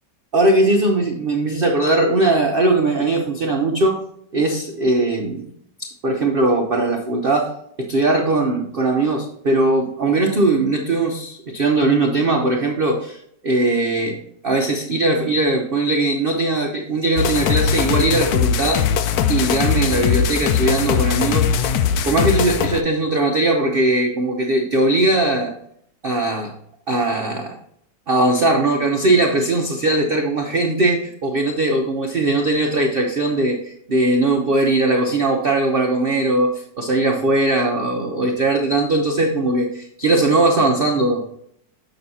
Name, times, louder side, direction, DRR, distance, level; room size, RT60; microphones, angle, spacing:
voice 1, 0.3-4.0 4.3-5.5 5.8-7.5 7.8-18.8 19.3-21.7 22.1-25.5 26.0-26.5 26.9-27.5 28.1-41.2, right 2 dB, 60° right, 2 dB, 0.5 m, -19 dB
sound 1, 17.2-22.8, left 7 dB, 70° left, 0.9 m, -20 dB
6.9 x 6.6 x 2.8 m, 0.69 s
omnidirectional pair, 2.0 m